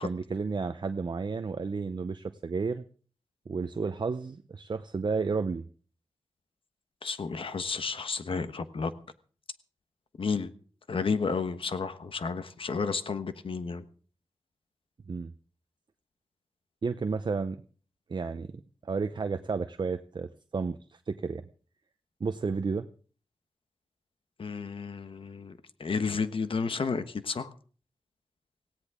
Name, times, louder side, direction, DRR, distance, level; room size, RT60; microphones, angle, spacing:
voice 1, 0.0-2.8 3.5-5.7 15.1-15.3 16.8-17.6 18.1-18.5 18.8-20.3 20.5-20.8 21.1-21.4 22.2-22.9, right 4 dB, 55° right, 0.7 m, -31 dB
voice 2, 7.0-8.9 10.2-10.5 10.9-13.8 24.4-27.5, left 5 dB, 75° left, 1.2 m, -32 dB
18.0 x 16.5 x 3.7 m
wide cardioid pair, 85°, 9 cm